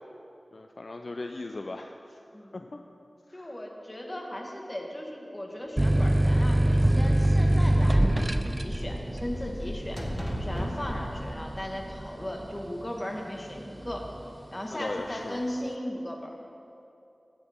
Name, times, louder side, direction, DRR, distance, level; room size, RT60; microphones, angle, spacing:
voice 1, 0.5-1.9 2.5-2.8 3.3-3.5 14.7-15.4, left 2 dB, 60° left, 5 dB, 0.4 m, -37 dB
voice 2, 3.3-10.0 10.4-14.1 14.5-16.3, left 1 dB, 25° left, 0 dB, 1.5 m, -37 dB
sound 1, 5.8-13.0 13.5-14.2, right 1 dB, 25° right, 0.4 m, -24 dB
sound 2, 6.1-12.6, equal, 5° right, 1.4 m, -38 dB
13.0 x 8.7 x 3.6 m, 2.7 s
wide cardioid pair, 50°, 0 cm